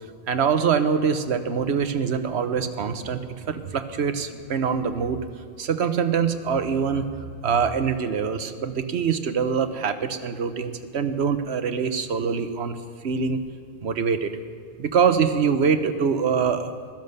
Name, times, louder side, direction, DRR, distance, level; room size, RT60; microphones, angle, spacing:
voice 1, 0.3-5.2 5.6-7.1 7.4-12.8 13.0-13.4 13.8-14.3 14.8-16.7, right 6 dB, 75° right, 9 dB, 1.2 m, -24 dB
16.0 x 13.5 x 6.7 m, 2.1 s
omnidirectional pair, 1.1 m